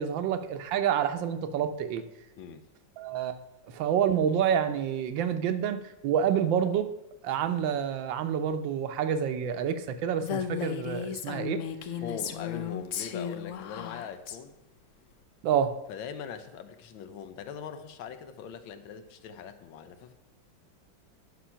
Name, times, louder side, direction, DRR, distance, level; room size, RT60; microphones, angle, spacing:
voice 1, 0.0-2.0 3.0-3.4 3.7-6.9 7.2-11.6 15.4-15.7, right 8 dB, 80° right, 10 dB, 1.5 m, -28 dB
Female speech woman speaking, 10.2-14.4, left 8 dB, 75° left, 0.7 m, -35 dB
voice 2, 12.0-14.6 15.9-20.1, left 7 dB, 90° left, 10 dB, 1.6 m, -41 dB
10.0 x 6.0 x 5.6 m, 0.91 s
omnidirectional pair, 2.1 m